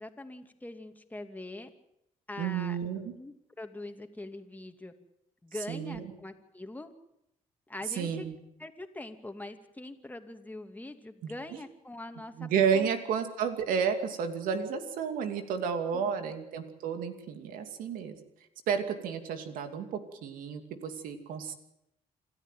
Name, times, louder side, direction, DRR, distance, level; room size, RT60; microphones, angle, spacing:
voice 1, 0.0-1.7 2.3-2.8 3.2-4.9 5.4-6.9 7.7-8.2 8.6-12.9 15.9-16.1, left 2 dB, 10° left, 6 dB, 2.6 m, -43 dB
voice 2, 2.4-3.1 5.7-6.0 8.0-8.3 11.2-11.3 12.4-18.2 18.7-21.5, right 7 dB, 85° right, 7 dB, 2.7 m, -31 dB
27.5 x 13.5 x 9.2 m, 0.83 s
cardioid pair, 85°, 14 cm